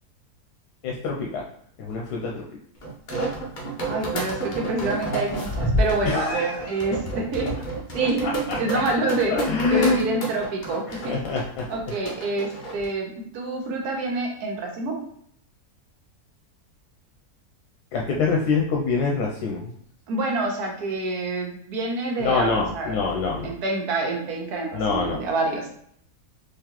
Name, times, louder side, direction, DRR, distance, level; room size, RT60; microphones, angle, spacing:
voice 1, 0.8-1.5 1.8-2.4 6.0-6.8 8.0-8.9 9.3-10.0 10.9-11.7 17.9-19.7 22.2-23.5 24.7-25.2, left 4 dB, 85° left, -1 dB, 1.1 m, -25 dB
sound 1, 2.8-12.9, right 1 dB, 40° left, 0.8 m, -30 dB
voice 2, 3.9-7.5 7.9-9.4 9.7-11.2 11.7-14.9 20.1-23.0 23.4-25.7, right 2 dB, 80° right, 1 dB, 1.4 m, -27 dB
3.9 x 2.9 x 2.9 m, 0.66 s
omnidirectional pair, 1.6 m